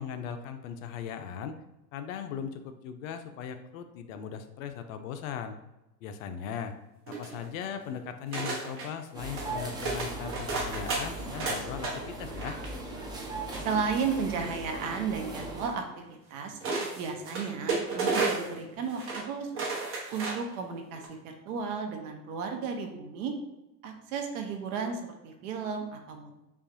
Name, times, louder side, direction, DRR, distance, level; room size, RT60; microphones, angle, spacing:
voice 1, 0.0-1.6 1.9-5.6 6.0-6.7 7.1-12.6, left 8 dB, 55° left, 8 dB, 0.5 m, -38 dB
sound 1, 7.1-7.7 8.3-8.9 9.3-9.5 9.8-11.9 12.3-12.7 13.5-14.3 15.7-15.8 16.6-18.6 18.9-19.3 19.5-20.5 20.9-21.1, right 3 dB, 25° right, 1.0 m, -33 dB
sound 2, 9.1-15.7, right 2 dB, 10° right, 0.4 m, -38 dB
voice 2, 13.6-16.6 17.0-19.7 20.1-23.3 23.8-26.3, right 5 dB, 60° right, 4 dB, 0.9 m, -34 dB
5.2 x 2.4 x 2.6 m, 0.96 s
hypercardioid pair, 95°, 50 cm